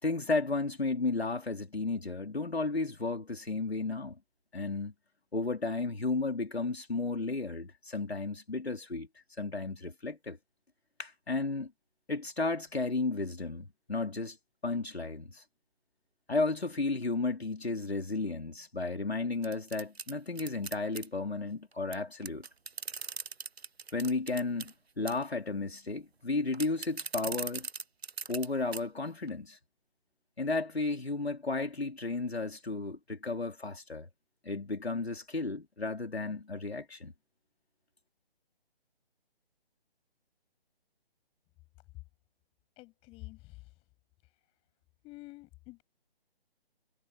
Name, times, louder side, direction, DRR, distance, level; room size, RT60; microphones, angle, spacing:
voice 1, 0.0-4.2 4.5-4.9 5.3-9.1 9.4-10.4 11.0-11.7 12.1-14.4 14.6-15.4 16.3-22.5 23.9-27.7 28.3-29.6 30.4-34.1 34.4-37.1, left 3 dB, 90° left, 4.0 m, -33 dB
sound 1, 19.4-21.1 21.9-22.0 22.2-24.7 25.1-25.3 26.5-28.5 28.7-28.8 29.3-29.4, right 5 dB, 85° right, 1.1 m, -39 dB
voice 2, 42.8-43.7 45.0-45.8, left 22 dB, 20° left, 7.8 m, -49 dB
figure-of-eight pair, 150°, 31 cm